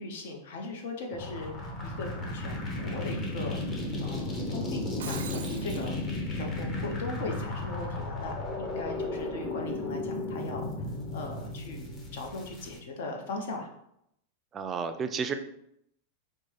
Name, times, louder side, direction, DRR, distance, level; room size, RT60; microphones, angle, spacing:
voice 1, 0.0-3.6 4.0-10.7 11.1-13.7, left 3 dB, 70° left, 2 dB, 0.8 m, -39 dB
sound 1, 1.1-12.8, left 2 dB, 25° left, 0.7 m, -34 dB
Shatter, 4.8-5.9, right 8 dB, 80° right, 0.5 m, -41 dB
voice 2, 14.5-15.3, right 6 dB, 25° right, 8 dB, 0.3 m, -31 dB
5.0 x 2.1 x 3.2 m, 0.77 s
supercardioid pair, 135°, 0 cm